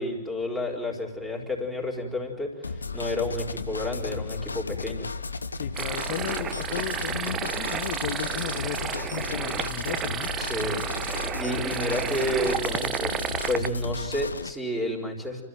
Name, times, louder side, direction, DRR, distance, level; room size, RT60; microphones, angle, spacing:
voice 1, 0.0-5.1 10.4-10.8 11.1-13.1 13.5-15.4, left 1 dB, ahead, 1 dB, 4.6 m, -30 dB
sound 1, 2.6-14.5, left 4 dB, 80° left, 0.9 m, -34 dB
voice 2, 5.6-10.3, left 11 dB, 50° left, 11 dB, 1.4 m, -35 dB
sound 2, 5.7-13.7, right 8 dB, 25° right, 0.7 m, -32 dB
29.0 x 14.0 x 9.3 m, 1.1 s
figure-of-eight pair, 105°, 0 cm